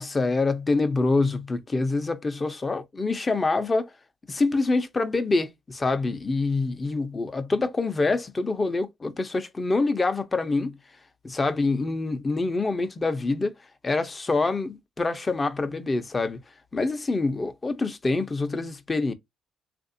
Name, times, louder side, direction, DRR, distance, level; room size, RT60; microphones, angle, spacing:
voice 1, 0.0-3.9 4.3-10.8 11.2-13.5 13.8-16.4 16.7-19.1, left 3 dB, 25° left, 0.7 m, -26 dB
3.5 x 2.6 x 2.6 m
cardioid pair, 90°, 0 cm